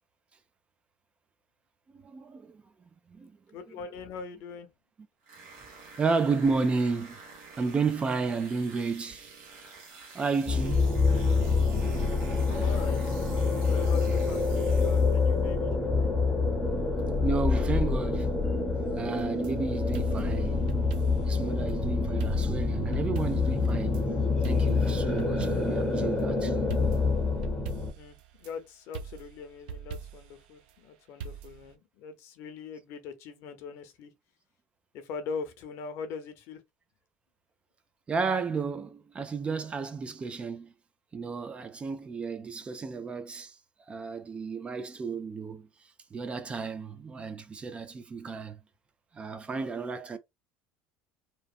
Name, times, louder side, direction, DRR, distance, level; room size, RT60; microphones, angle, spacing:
voice 1, 2.0-2.6 3.1-3.3 3.7-3.8 6.0-7.2 7.6-9.3 10.1-10.9 17.2-18.4 19.0-20.6 21.3-24.0 24.4-26.6 38.1-40.7 41.1-43.6 43.9-45.7 46.1-48.6 49.1-50.2, right 4 dB, 25° right, 0.4 m, -32 dB
voice 2, 3.5-4.7 11.9-12.1 12.5-15.7 20.9-21.1 21.3-21.6 28.0-34.1 34.9-36.6, left 5 dB, 65° left, 0.7 m, -41 dB
sound 1, 5.2-15.4, right 4 dB, 60° right, 1.2 m, -49 dB
sound 2, 10.5-27.9, left 4 dB, 10° left, 0.7 m, -26 dB
sound 3, 19.1-19.5 19.9-21.4 21.7-21.8 22.2-24.0 24.4-25.9 26.7-28.5 28.9-30.4 31.2-31.7, right 6 dB, 90° right, 0.4 m, -42 dB
2.9 x 2.1 x 2.4 m
supercardioid pair, 115°, 5 cm